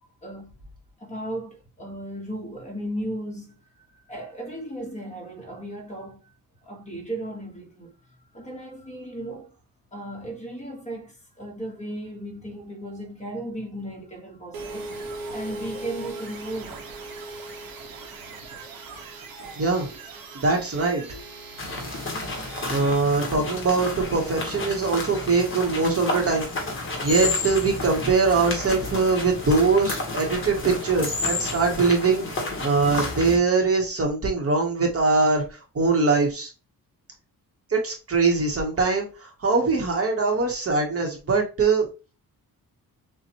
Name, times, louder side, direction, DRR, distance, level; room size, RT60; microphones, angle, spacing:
voice 1, 0.2-0.5 1.0-3.6 4.0-6.3 6.6-7.9 8.3-9.6 9.9-16.8, right 1 dB, 20° left, 1.4 m, -36 dB
sound 1, 14.5-23.0, right 3 dB, 75° right, 1.3 m, -39 dB
voice 2, 19.6-19.9 20.3-21.0 22.7-26.5 27.0-36.5 37.7-41.9, right 4 dB, 40° right, 1.2 m, -22 dB
sound 2, 21.6-33.4, left 2 dB, 35° left, 1.5 m, -31 dB
6.8 x 2.4 x 3.0 m
wide cardioid pair, 155°, 36 cm